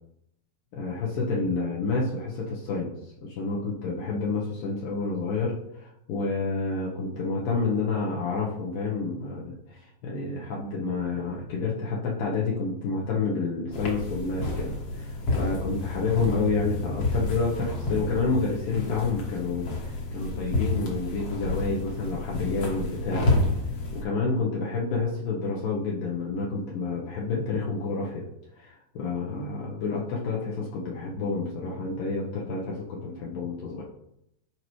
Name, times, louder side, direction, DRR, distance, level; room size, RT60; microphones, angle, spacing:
voice 1, 0.7-23.2 23.9-28.2 28.5-33.8, left 4 dB, 70° left, -4 dB, 2.5 m, -29 dB
sound 1, 13.7-24.0, left 2 dB, 50° left, 2.0 m, -29 dB
12.0 x 4.7 x 3.1 m, 0.79 s
omnidirectional pair, 4.4 m